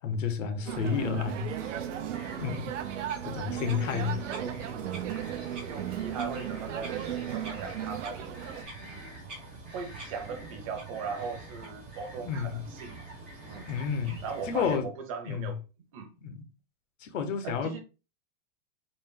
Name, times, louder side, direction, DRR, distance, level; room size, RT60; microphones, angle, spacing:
voice 1, 0.0-1.5 2.4-2.7 3.2-4.2 12.2-12.6 13.7-14.2 14.4-14.9 15.3-15.5 16.2-16.4 17.0-17.8, left 6 dB, 80° left, 1.0 m, -31 dB
sound 1, 0.7-8.6, right 10 dB, 75° right, 0.7 m, -36 dB
Bird vocalization bird call bird song, 1.5-14.8, right 3 dB, 10° right, 0.3 m, -45 dB
voice 2, 4.3-4.6 5.7-8.3 9.7-13.1 13.5-13.7 14.2-15.6 15.9-16.1 17.4-17.8, right 5 dB, 30° right, 0.7 m, -39 dB
4.0 x 2.1 x 3.7 m
supercardioid pair, 180°, 37 cm